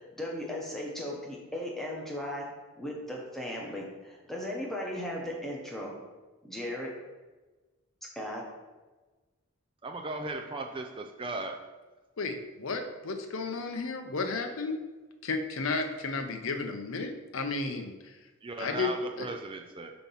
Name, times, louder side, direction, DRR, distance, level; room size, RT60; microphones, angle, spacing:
voice 1, 0.0-2.5 2.8-5.9 6.4-6.9 8.1-8.4, left 1 dB, ahead, -2 dB, 1.0 m, -36 dB
voice 2, 9.8-11.6 18.4-19.9, right 3 dB, 25° right, 3 dB, 0.4 m, -37 dB
voice 3, 12.2-14.8 15.2-18.1 18.6-18.9 19.2-19.3, left 3 dB, 65° left, 6 dB, 0.7 m, -33 dB
7.1 x 2.9 x 5.6 m, 1.2 s
head